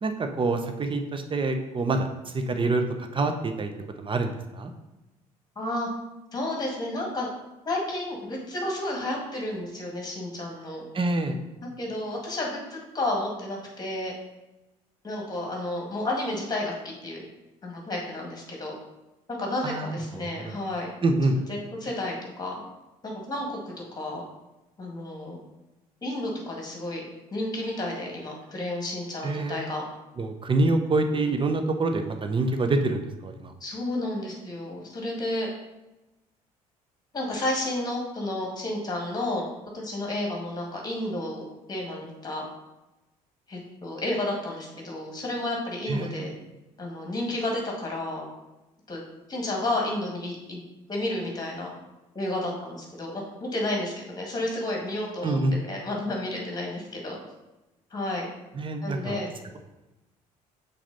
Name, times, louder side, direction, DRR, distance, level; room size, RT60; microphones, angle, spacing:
voice 1, 0.0-3.7 4.0-4.7 10.9-11.4 19.6-20.0 20.4-20.5 21.0-21.4 29.2-29.6 30.2-33.5 45.9-46.2 55.2-55.5 58.5-59.2, right 2 dB, 25° right, 6 dB, 0.8 m, -26 dB
voice 2, 5.6-5.9 6.3-7.3 7.7-10.8 11.8-14.1 15.0-16.7 17.0-17.2 17.6-18.7 19.3-20.9 21.5-22.6 23.0-23.6 24.0-24.2 24.8-25.4 26.0-27.0 27.3-29.8 33.6-35.5 37.1-39.5 39.7-42.4 43.5-46.3 46.8-48.3 48.9-49.0 49.3-50.6 50.9-51.7 52.1-57.2 57.9-58.3 58.8-59.3, left 1 dB, 20° left, -1 dB, 2.0 m, -31 dB
5.9 x 4.1 x 4.0 m, 1.0 s
figure-of-eight pair, 55°, 19 cm